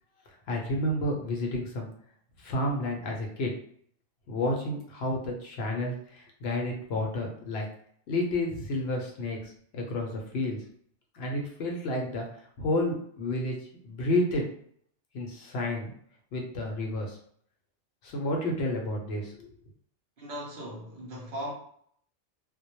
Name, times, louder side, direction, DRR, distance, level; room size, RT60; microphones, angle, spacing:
voice 1, 0.5-1.9 2.4-3.5 4.3-7.7 8.1-10.6 11.1-12.3 12.6-13.6 13.8-14.4 15.1-15.9 16.3-17.2 18.0-19.5, left 1 dB, 65° left, 1 dB, 0.8 m, -30 dB
voice 2, 20.2-21.5, equal, 55° right, -2 dB, 0.7 m, -38 dB
2.1 x 2.0 x 2.8 m, 0.64 s
omnidirectional pair, 1.2 m